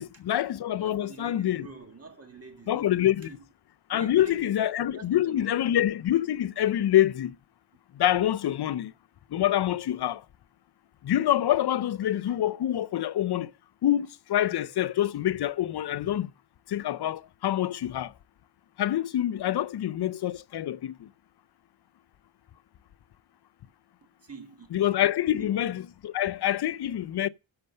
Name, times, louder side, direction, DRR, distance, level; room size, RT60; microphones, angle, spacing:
voice 1, 0.0-1.7 2.7-3.3 3.9-7.4 8.0-8.9 9.3-10.2 11.0-13.5 13.8-16.3 16.7-18.1 18.8-21.1 24.7-27.3, left 12 dB, 55° left, 0.5 m, -26 dB
voice 2, 0.8-3.4 3.9-4.5 4.9-5.6 24.2-24.8 25.3-25.5, right 4 dB, 30° right, 1.9 m, -46 dB
10.5 x 6.9 x 5.4 m
wide cardioid pair, 180°, 49 cm